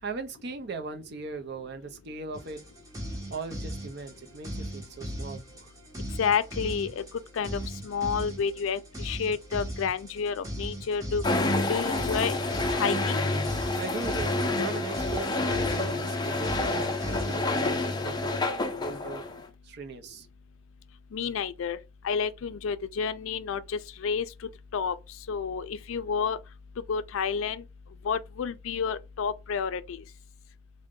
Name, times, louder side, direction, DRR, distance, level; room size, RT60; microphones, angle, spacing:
voice 1, 0.0-2.6 3.3-5.7 13.8-19.2 19.6-20.3, right 4 dB, 55° right, 0.5 m, -39 dB
sound 1, 2.3-17.7, equal, 15° right, 0.8 m, -39 dB
voice 2, 6.2-7.0 7.3-11.2 11.7-12.3 12.7-13.2 21.1-21.8 22.0-24.3 24.7-24.9 25.3-26.4 26.9-27.6 28.0-30.0, left 6 dB, 75° left, 0.4 m, -30 dB
sound 2, 11.2-19.4, left 2 dB, 20° left, 0.5 m, -28 dB
3.7 x 2.1 x 3.6 m
head